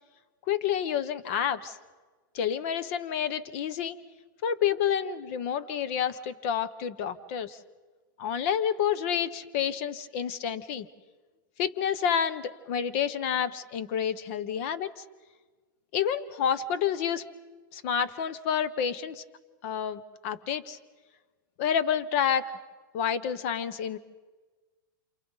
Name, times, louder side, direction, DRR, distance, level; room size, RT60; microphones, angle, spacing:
voice 1, 0.5-1.8 2.3-4.0 4.4-7.6 8.2-10.9 11.6-15.0 15.9-17.3 17.7-19.2 19.6-20.8 21.6-22.4 22.9-24.0, left 8 dB, 40° left, 14 dB, 0.9 m, -29 dB
28.5 x 27.5 x 4.0 m, 1.3 s
supercardioid pair, 165°, 11 cm